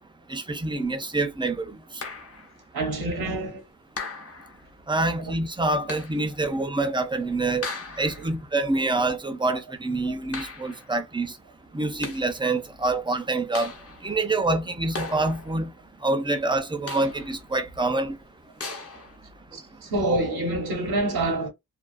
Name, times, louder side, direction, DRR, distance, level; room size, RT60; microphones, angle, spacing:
voice 1, 0.3-1.8 4.9-7.7 8.0-11.3 11.7-13.7 14.0-15.7 16.0-18.2, right 2 dB, 15° right, 0.4 m, -26 dB
sound 1, 2.0-2.6 4.0-4.7 5.9-6.3 7.6-8.4 10.3-10.9 11.8-12.4 13.5-14.1 14.9-15.7 16.9-17.4 18.6-19.2, left 3 dB, 40° left, 0.7 m, -37 dB
voice 2, 2.7-3.6 5.1-5.2 8.2-8.4 10.1-10.2 19.5-21.5, right 2 dB, 80° right, 0.8 m, -27 dB
2.3 x 2.3 x 2.4 m
wide cardioid pair, 95°, 37 cm